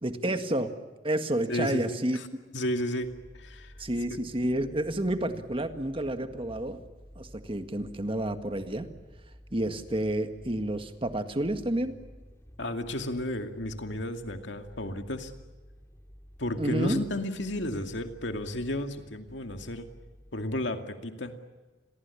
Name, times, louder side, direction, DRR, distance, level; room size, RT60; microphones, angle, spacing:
voice 1, 0.0-0.7 1.0-2.2 3.8-6.8 7.2-8.9 9.5-11.9 16.6-17.0, right 1 dB, 30° right, 8 dB, 1.8 m, -30 dB
voice 2, 1.5-2.3 2.5-3.7 12.6-15.3 16.4-19.9 20.3-21.4, left 1 dB, 70° left, 6 dB, 2.4 m, -33 dB
sound 1, 3.0-20.6, equal, 15° left, 2.4 m, -52 dB
30.0 x 22.5 x 8.5 m, 1.2 s
head